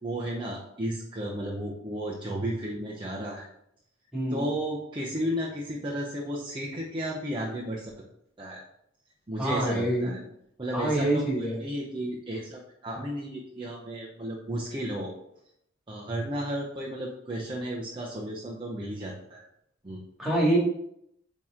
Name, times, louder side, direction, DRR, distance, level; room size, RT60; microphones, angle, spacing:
voice 1, 0.0-3.5 4.3-7.9 8.4-8.6 9.3-10.2 10.6-15.1 15.9-19.5 19.8-20.0, right 1 dB, 25° right, -3 dB, 0.7 m, -33 dB
voice 2, 4.1-4.5 9.4-10.2 10.7-11.6 20.2-20.6, right 1 dB, ahead, -4 dB, 2.1 m, -26 dB
8.5 x 3.0 x 3.7 m, 0.75 s
head